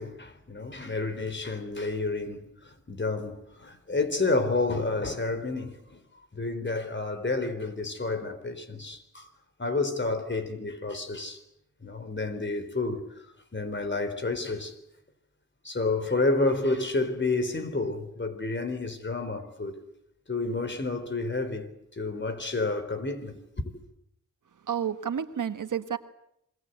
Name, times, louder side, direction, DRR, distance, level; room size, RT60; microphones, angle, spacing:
voice 1, 0.0-6.0 6.3-9.3 9.6-11.4 11.8-14.7 15.6-19.8 20.3-23.7, left 3 dB, 35° left, 4.2 m, -30 dB
voice 2, 24.6-26.0, right 8 dB, 80° right, 1.6 m, -30 dB
27.5 x 22.5 x 8.1 m
cardioid pair, 60°, 31 cm